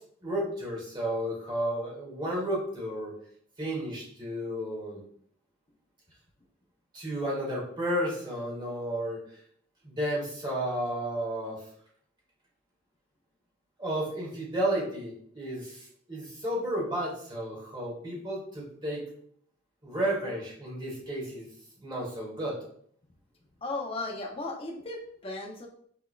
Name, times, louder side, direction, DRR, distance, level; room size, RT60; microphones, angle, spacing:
voice 1, 0.2-3.1 3.6-5.0 6.9-9.2 9.8-11.6 13.8-19.0 19.8-21.5 21.8-22.6, right 1 dB, 20° right, -4 dB, 1.6 m, -32 dB
voice 2, 23.6-25.7, left 2 dB, 30° left, 1 dB, 0.7 m, -36 dB
6.0 x 3.6 x 2.2 m, 0.63 s
head